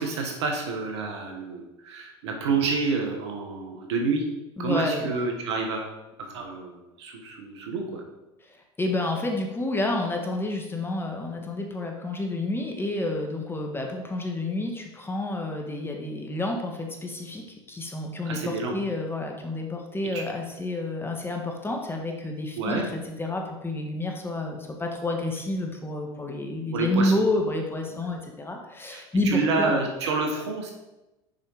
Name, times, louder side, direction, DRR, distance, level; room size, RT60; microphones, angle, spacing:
voice 1, 0.0-4.2 4.6-5.9 6.2-8.0 18.2-18.7 20.1-20.2 22.5-22.9 26.7-27.1 28.9-29.0 29.2-30.7, right 4 dB, 80° right, 2 dB, 1.7 m, -28 dB
voice 2, 4.6-5.1 8.8-29.7, left 2 dB, 15° left, 2 dB, 1.6 m, -29 dB
6.6 x 5.3 x 4.9 m, 0.98 s
hypercardioid pair, 85°, 14 cm